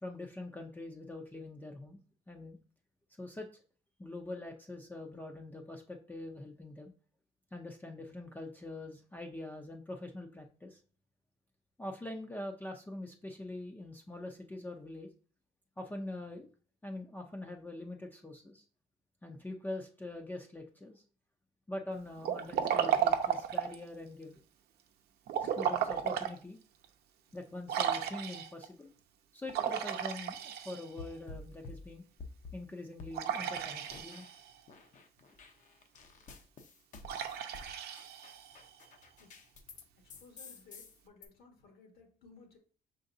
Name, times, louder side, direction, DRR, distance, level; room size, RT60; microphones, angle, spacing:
voice 1, 0.0-2.6 3.2-3.6 4.0-6.9 7.5-10.8 11.8-15.1 15.8-16.5 16.8-18.6 19.2-21.0 21.7-24.4 25.4-26.6 27.3-28.9 29.3-32.0 32.5-34.3, left 2 dB, 10° left, 2 dB, 0.5 m, -44 dB
Liquid, 22.2-23.8 25.3-26.3 26.8-26.9 27.7-28.6 29.5-31.1 33.1-34.5 37.0-38.7, right 9 dB, 70° right, 0.7 m, -33 dB
sound 1, 31.0-32.6 33.0-34.4 34.7-39.8 40.1-41.3, left 3 dB, 50° left, 0.8 m, -50 dB
voice 2, 40.0-42.6, left 3 dB, 65° left, 3 dB, 1.3 m, -58 dB
5.0 x 3.8 x 2.6 m, 0.41 s
cardioid pair, 110°, 17 cm